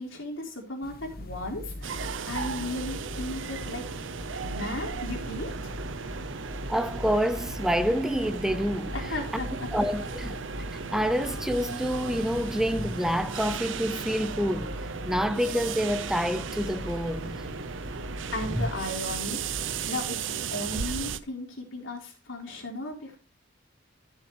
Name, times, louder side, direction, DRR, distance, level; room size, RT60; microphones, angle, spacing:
voice 1, 0.0-3.8 4.4-5.7 8.9-9.7 18.3-19.4 19.8-23.2, left 1 dB, 80° left, 4.0 m, -35 dB
sound 1, 0.8-19.9, left 1 dB, 50° left, 1.2 m, -41 dB
sound 2, 1.8-21.2, right 6 dB, 70° right, 0.6 m, -36 dB
voice 2, 6.7-8.9 9.7-10.4 10.9-14.7 15.0-17.4, equal, 5° right, 0.4 m, -27 dB
13.0 x 7.3 x 3.2 m
head